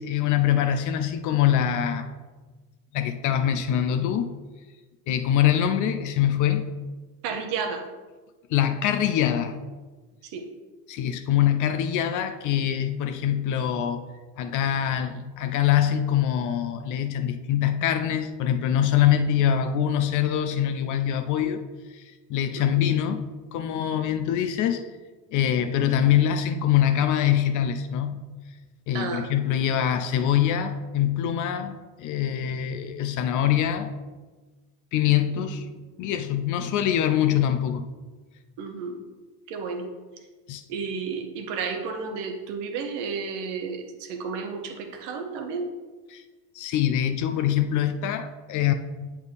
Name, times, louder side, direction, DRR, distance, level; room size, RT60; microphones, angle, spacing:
voice 1, 0.0-2.1 2.9-4.3 5.1-6.7 8.5-9.6 10.9-14.0 14.4-21.6 21.9-22.0 22.3-23.2 23.5-24.8 25.3-28.2 28.9-33.9 34.9-35.7 36.0-37.8 40.5-40.6 46.1-46.2 46.5-48.7, left 10 dB, 40° left, 8 dB, 0.5 m, -24 dB
voice 2, 7.2-7.9 10.3-10.4 22.6-22.8 28.9-29.3 35.3-35.6 38.6-39.0 39.5-39.9 40.7-45.7, right 5 dB, 55° right, 5 dB, 1.1 m, -32 dB
7.7 x 4.4 x 3.4 m, 1.3 s
hypercardioid pair, 80°, 49 cm